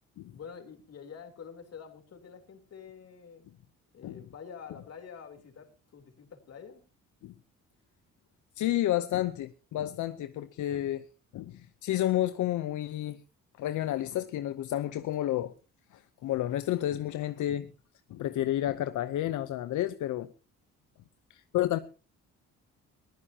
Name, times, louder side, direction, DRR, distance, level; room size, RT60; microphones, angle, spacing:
voice 1, 0.3-3.5 3.9-6.8, left 6 dB, 55° left, 3.5 m, -47 dB
voice 2, 8.6-11.1 11.3-13.2 13.6-15.5 15.9-17.7 18.1-20.3 21.3-21.8, left 13 dB, 80° left, 0.8 m, -30 dB
22.0 x 14.5 x 2.9 m
cardioid pair, 90°, 30 cm